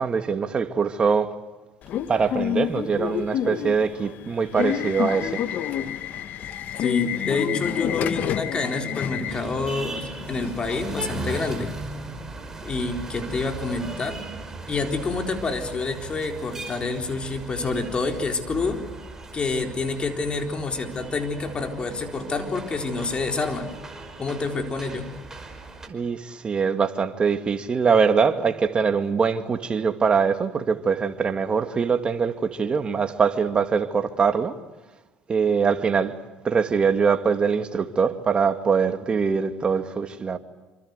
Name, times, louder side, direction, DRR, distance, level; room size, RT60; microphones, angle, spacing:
voice 1, 0.0-1.3 2.1-5.4 25.9-34.5 35.3-36.1 36.4-40.4, right 5 dB, 30° right, 2.2 m, -23 dB
Subway metro underground / Alarm, 1.8-11.7, left 10 dB, 60° left, 1.7 m, -29 dB
voice 2, 6.8-11.7 12.6-14.2 14.7-18.8 19.3-23.7 24.2-25.1, left 3 dB, 30° left, 4.1 m, -28 dB
sound 1, 9.3-25.9, right 3 dB, 15° right, 5.1 m, -38 dB
27.0 x 26.0 x 8.2 m
supercardioid pair, 100°, 3 cm